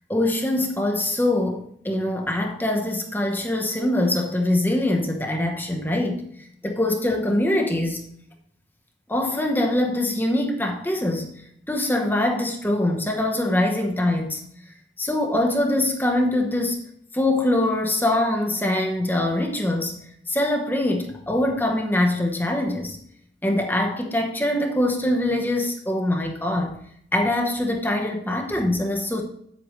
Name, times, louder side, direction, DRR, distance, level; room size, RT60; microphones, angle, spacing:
voice 1, 0.1-6.3 6.6-8.0 9.1-11.3 11.7-14.4 15.0-16.8 17.1-20.0 20.3-23.0 23.4-26.8 27.1-29.2, left 1 dB, 10° left, 2 dB, 0.9 m, -23 dB
8.7 x 8.1 x 3.2 m, 0.69 s
head